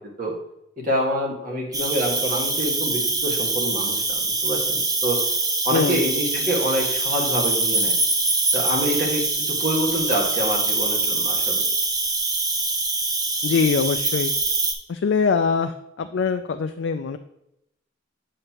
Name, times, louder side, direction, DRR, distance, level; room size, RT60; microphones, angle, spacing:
voice 1, 0.8-5.2 5.6-7.9 8.5-11.7, equal, 45° right, -2 dB, 1.7 m, -26 dB
Cricket, 1.7-14.7, right 3 dB, 20° right, 0.7 m, -24 dB
voice 2, 5.7-6.0 13.4-14.3 14.9-17.2, left 5 dB, 60° left, 7 dB, 0.3 m, -23 dB
7.8 x 6.6 x 2.9 m, 0.82 s
head